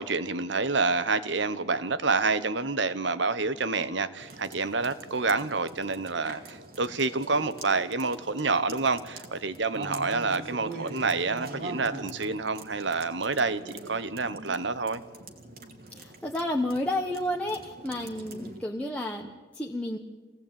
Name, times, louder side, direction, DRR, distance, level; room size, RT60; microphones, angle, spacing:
voice 1, 0.0-15.0, right 4 dB, 75° right, 14 dB, 1.2 m, -28 dB
sound 1, 4.2-18.6, right 2 dB, 50° right, 2.3 m, -44 dB
voice 2, 15.9-20.0, left 1 dB, 5° left, 0 dB, 1.1 m, -31 dB
24.5 x 17.5 x 8.9 m, 1.4 s
head